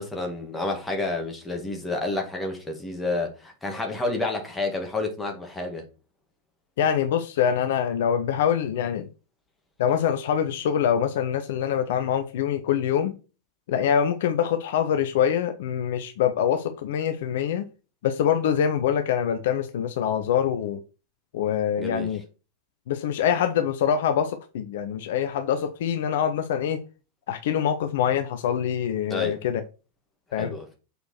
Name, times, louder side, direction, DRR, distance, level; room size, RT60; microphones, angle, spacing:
voice 1, 0.0-5.8 21.8-22.1 29.1-29.4 30.4-30.8, left 2 dB, 10° left, 2.1 m, -29 dB
voice 2, 6.8-9.1 9.8-13.1 13.7-17.7 18.0-20.8 21.3-22.2 22.9-26.8 27.3-29.6 30.3-30.6, left 8 dB, 55° left, 0.7 m, -24 dB
6.6 x 4.6 x 4.4 m
figure-of-eight pair, 90°, 0 cm